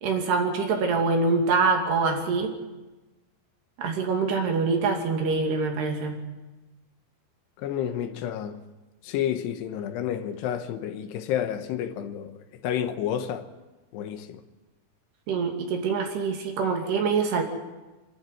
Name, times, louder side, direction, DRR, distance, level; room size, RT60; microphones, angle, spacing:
voice 1, 0.0-2.5 3.8-6.2 15.3-17.4, right 4 dB, 75° right, 4.7 m, -25 dB
voice 2, 7.6-8.6 9.0-13.5 13.9-14.4, left 10 dB, 85° left, 3.2 m, -30 dB
27.0 x 12.0 x 9.6 m
omnidirectional pair, 4.8 m